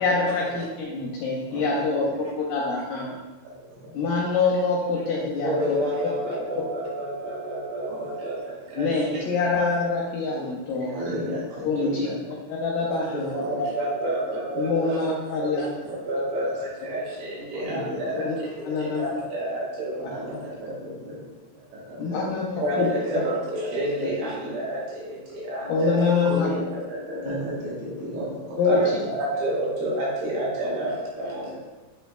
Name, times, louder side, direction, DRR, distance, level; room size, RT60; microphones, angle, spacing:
voice 1, 0.0-3.2 3.9-5.8 8.8-10.9 11.6-11.9 12.6-13.4 14.6-15.7 18.2-18.3 18.6-19.1 22.0-22.9 23.1-23.2 25.7-26.5 27.2-27.4 28.6-28.8, left 4 dB, 80° left, -4 dB, 2.0 m, -25 dB
voice 2, 1.5-2.2 3.4-3.9 5.1-5.9 7.9-8.7 10.9-12.3 13.4-14.5 15.0-15.2 15.5-15.9 16.4-16.5 16.9-17.0 17.5-19.2 20.1-23.0 23.6-23.7 24.0-25.1 26.2-29.1 30.6-31.6, equal, 90° right, -6 dB, 3.3 m, -36 dB
voice 3, 5.4-9.2 10.3-10.5 10.9-11.0 11.8-11.9 13.3-15.0 15.3-20.1 22.6-26.0 28.7-28.9 29.1-30.9 31.2-31.4, right 1 dB, 75° right, -5 dB, 2.8 m, -29 dB
7.9 x 2.8 x 2.2 m, 1.1 s
omnidirectional pair, 4.5 m